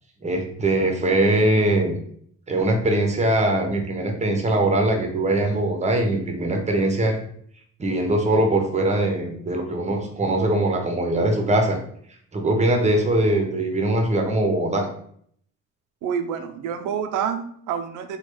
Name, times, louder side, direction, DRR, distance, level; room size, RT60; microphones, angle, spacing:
voice 1, 0.2-2.0 2.5-7.2 7.8-11.8 12.3-14.9, right 1 dB, 25° right, 3 dB, 0.7 m, -21 dB
voice 2, 16.0-18.2, right 7 dB, 90° right, 7 dB, 0.5 m, -28 dB
3.2 x 2.3 x 3.1 m, 0.63 s
cardioid pair, 90°, 30 cm